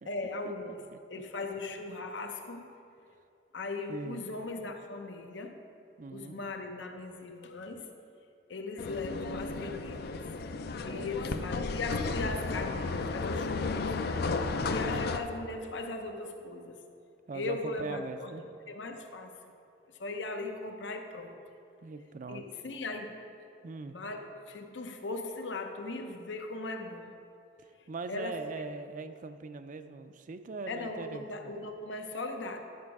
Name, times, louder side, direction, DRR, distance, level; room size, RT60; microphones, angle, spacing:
voice 1, 0.1-2.7 3.5-5.6 6.1-7.9 8.5-10.3 10.9-13.9 14.7-16.8 17.3-19.3 20.0-21.4 22.3-23.2 23.9-27.1 28.1-28.4 30.7-32.6, left 2 dB, 80° left, 4 dB, 0.8 m, -38 dB
voice 2, 3.9-4.2 6.0-6.4 10.8-11.4 14.5-15.0 17.3-18.4 21.8-22.5 23.6-24.0 27.6-31.5, right 3 dB, 45° right, 10 dB, 0.4 m, -41 dB
sound 1, 8.8-15.2, left 3 dB, 60° left, 0.5 m, -33 dB
11.0 x 6.2 x 4.7 m, 2.6 s
head